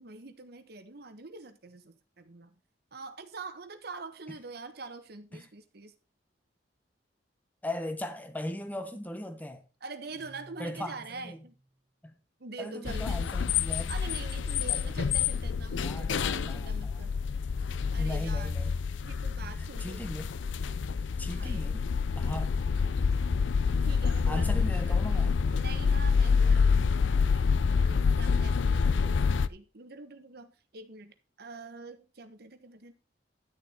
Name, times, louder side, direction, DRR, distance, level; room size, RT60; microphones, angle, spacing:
voice 1, 0.0-2.5 2.9-5.9 9.8-11.5 12.4-13.2 13.9-17.2 17.9-18.5 19.0-20.0 21.3-22.5 23.8-27.5 27.8-32.9, right 3 dB, 60° right, 1.2 m, -45 dB
voice 2, 7.6-9.6 10.6-11.4 12.0-12.1 12.6-13.9 14.7-14.9 15.8-17.1 18.0-18.7 19.4-20.3 21.2-21.8 22.1-22.7 24.3-25.4, left 1 dB, 10° left, 1.1 m, -38 dB
Guitar, 10.0-11.7, right 1 dB, 25° left, 2.8 m, -55 dB
sound 1, 12.9-29.5, left 5 dB, 90° left, 0.5 m, -27 dB
10.5 x 6.8 x 4.3 m
head